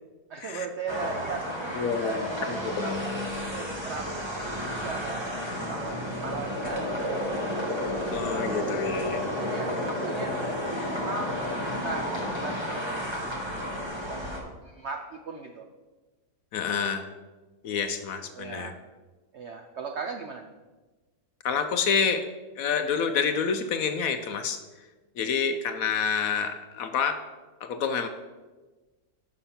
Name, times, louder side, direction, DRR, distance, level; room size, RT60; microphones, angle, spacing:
voice 1, 0.3-4.2 4.5-7.4 9.5-10.3 10.7-15.7 18.3-18.8 19.3-20.5, right 4 dB, 70° right, 4 dB, 0.6 m, -38 dB
sound 1, 0.9-14.4, left 1 dB, 20° right, 1.2 m, -31 dB
voice 2, 1.7-3.0 8.1-9.2 16.5-17.1 17.6-18.7 21.4-22.3 22.6-24.6 25.2-27.2 27.6-28.1, left 6 dB, 70° left, 8 dB, 0.9 m, -28 dB
6.8 x 6.2 x 5.7 m, 1.2 s
omnidirectional pair, 1.8 m